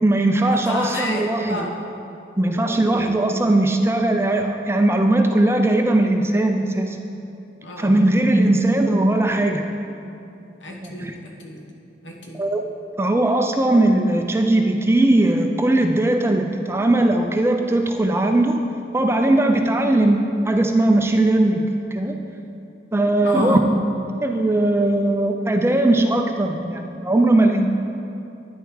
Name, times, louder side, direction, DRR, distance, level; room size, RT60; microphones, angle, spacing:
voice 1, 0.0-1.7 2.4-7.0 7.8-9.6 10.7-11.1 12.3-18.6 18.9-22.1 22.9-23.6 24.2-27.7, right 1 dB, 15° right, 5 dB, 0.4 m, -19 dB
voice 2, 0.5-1.8 2.4-3.2 7.6-7.9 8.3-8.5 10.6-11.6 12.0-12.4 23.2-23.6, left 1 dB, 85° left, 1 dB, 1.2 m, -31 dB
9.6 x 6.8 x 4.8 m, 2.6 s
head